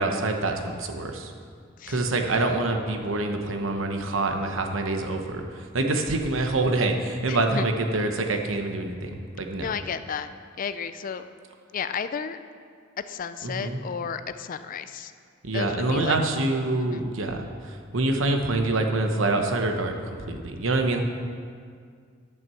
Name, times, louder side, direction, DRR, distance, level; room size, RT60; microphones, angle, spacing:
voice 1, 0.0-1.3 1.9-5.4 5.7-9.7 13.4-13.8 15.4-21.0, right 2 dB, 80° right, 4 dB, 1.0 m, -26 dB
voice 2, 1.8-2.6 7.3-7.7 9.6-10.3 10.6-11.3 11.7-12.4 13.1-15.1 15.5-16.2 16.8-17.0, left 6 dB, 45° left, 11 dB, 0.4 m, -33 dB
10.5 x 6.0 x 6.9 m, 2.1 s
head